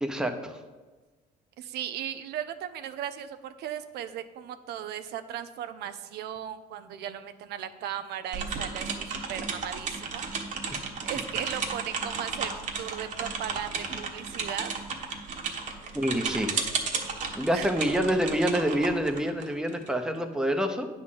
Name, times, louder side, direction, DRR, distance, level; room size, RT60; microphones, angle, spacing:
voice 1, 0.0-0.6 15.9-16.6 17.3-20.9, equal, 5° right, 5 dB, 0.9 m, -27 dB
voice 2, 1.6-10.3 11.0-14.7 17.5-17.7, right 10 dB, 75° right, 10 dB, 0.6 m, -37 dB
sound 1, 8.3-19.9, right 5 dB, 45° right, 1.3 m, -34 dB
9.4 x 4.3 x 7.5 m, 1.3 s
cardioid pair, 110°, 17 cm